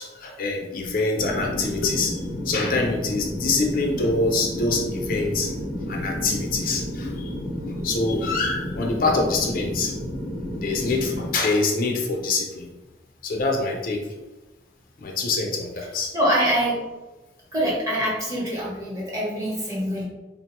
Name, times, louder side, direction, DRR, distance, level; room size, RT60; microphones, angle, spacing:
voice 1, 0.0-2.2 2.4-5.5 5.9-7.4 7.8-9.9 10.6-12.7 13.2-14.0 15.0-16.1, left 3 dB, 50° left, 1 dB, 0.4 m, -25 dB
sound 1, 1.2-11.3, equal, 85° right, 1.3 m, -31 dB
voice 2, 16.1-16.7 17.5-20.0, equal, 20° right, -6 dB, 0.9 m, -24 dB
3.6 x 2.2 x 2.9 m, 1.1 s
head